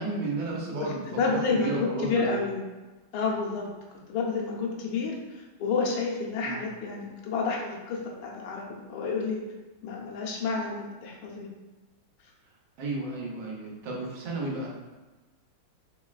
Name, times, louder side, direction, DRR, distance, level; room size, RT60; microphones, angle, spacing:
voice 1, 0.0-1.0 1.3-2.4 6.4-6.6 12.8-14.7, right 2 dB, 90° right, -3 dB, 1.6 m, -33 dB
voice 2, 0.8-2.6 3.1-3.7 4.1-9.4 9.8-11.5, left 4 dB, 85° left, -1 dB, 1.4 m, -30 dB
3.9 x 3.0 x 2.3 m, 1.2 s
omnidirectional pair, 2.2 m